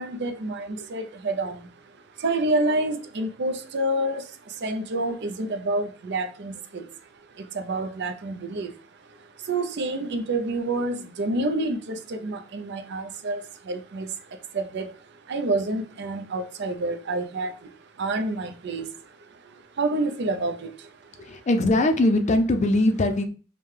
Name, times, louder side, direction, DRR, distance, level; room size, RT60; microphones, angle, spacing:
voice 1, 0.0-1.6 2.2-4.2 4.6-6.8 7.6-8.7 9.5-13.4 13.7-14.1 14.5-14.9 15.3-17.5 18.0-18.9 19.8-20.7, right 2 dB, 60° right, 0.5 m, -28 dB
voice 2, 21.2-23.2, left 1 dB, 35° left, 0.4 m, -21 dB
5.2 x 2.2 x 3.2 m
head